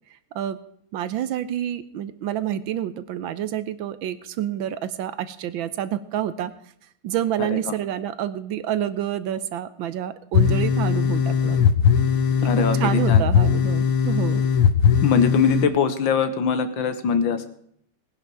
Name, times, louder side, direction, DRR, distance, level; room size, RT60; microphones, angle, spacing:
voice 1, 0.9-6.5 7.0-11.7 12.4-14.4, right 10 dB, 75° right, 14 dB, 1.4 m, -28 dB
voice 2, 7.4-7.7 12.4-13.2 15.0-17.5, left 6 dB, 70° left, 11 dB, 1.7 m, -22 dB
sound 1, 10.3-15.7, left 7 dB, 85° left, 1.7 m, -19 dB
18.5 x 10.5 x 4.7 m, 0.67 s
omnidirectional pair, 2.3 m